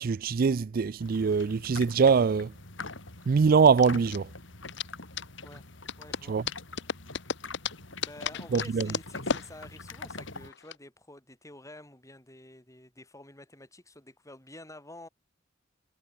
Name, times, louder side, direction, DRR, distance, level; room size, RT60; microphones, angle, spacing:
voice 1, 0.0-2.5 3.3-4.3 6.3-6.4 8.5-8.9, right 5 dB, 50° right, 0.4 m, -23 dB
sound 1, 1.0-10.5, left 3 dB, 85° left, 6.5 m, -44 dB
sound 2, 1.8-10.8, left 6 dB, 65° left, 0.8 m, -37 dB
voice 2, 6.0-6.4 8.0-15.1, left 1 dB, 15° left, 7.9 m, -49 dB
head